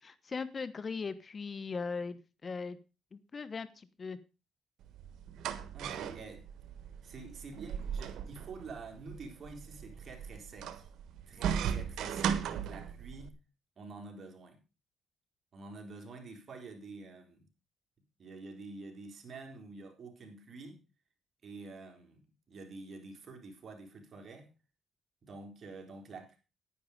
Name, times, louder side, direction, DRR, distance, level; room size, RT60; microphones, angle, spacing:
voice 1, 0.0-2.8 3.1-4.2, left 4 dB, 35° left, 1.0 m, -39 dB
sound 1, 4.8-13.3, right 8 dB, 80° right, 1.3 m, -37 dB
voice 2, 5.7-6.5 7.0-10.9 11.3-13.3 13.8-14.6 15.5-17.5 18.2-20.8 21.4-24.5 25.2-26.4, right 3 dB, 45° right, 4.0 m, -48 dB
10.5 x 10.0 x 4.9 m
cardioid pair, 90°, 0 cm